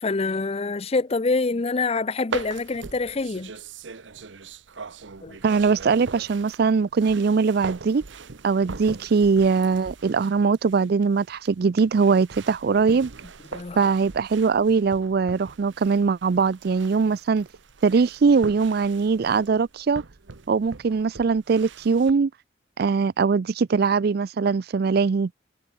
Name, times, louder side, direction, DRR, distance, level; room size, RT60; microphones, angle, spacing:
voice 1, 0.0-3.5 5.2-5.4 13.5-13.9, left 3 dB, 35° left, 0.6 m, -26 dB
sound 1, 2.3-22.1, right 4 dB, 80° right, 1.0 m, -41 dB
voice 2, 5.4-8.0 8.4-13.1 13.8-17.5 17.8-20.0 20.5-22.3 22.8-25.3, right 5 dB, 55° right, 0.4 m, -21 dB
head